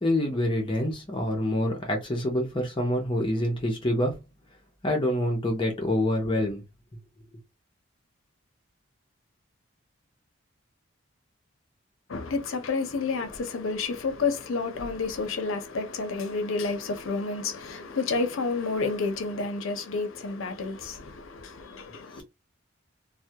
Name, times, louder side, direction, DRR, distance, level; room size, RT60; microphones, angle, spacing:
voice 1, 0.0-4.2 4.8-6.6 22.2-22.3, left 1 dB, 25° left, 0.6 m, -26 dB
voice 2, 12.1-22.2, left 4 dB, 80° left, 0.6 m, -30 dB
2.2 x 2.1 x 2.8 m
head